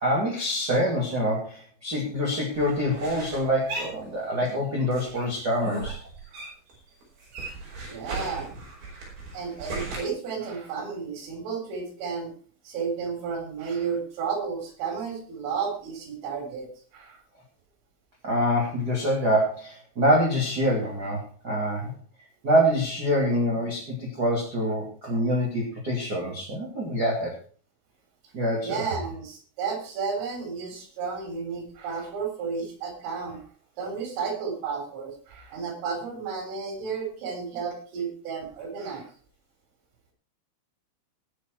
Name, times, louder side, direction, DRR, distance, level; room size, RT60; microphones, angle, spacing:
voice 1, 0.0-6.0 18.2-21.9 22.4-27.3 28.3-28.8, equal, 30° right, -3 dB, 2.0 m, -25 dB
sound 1, 2.5-4.6 4.9-6.8 7.0-10.0, right 2 dB, 50° right, 6.7 m, -37 dB
voice 2, 7.8-8.5 9.3-12.3 12.6-16.7 16.9-17.2 28.6-33.4 33.8-39.1, right 5 dB, 75° right, 4 dB, 6.2 m, -32 dB
19.0 x 7.0 x 4.5 m, 0.41 s
omnidirectional pair, 5.9 m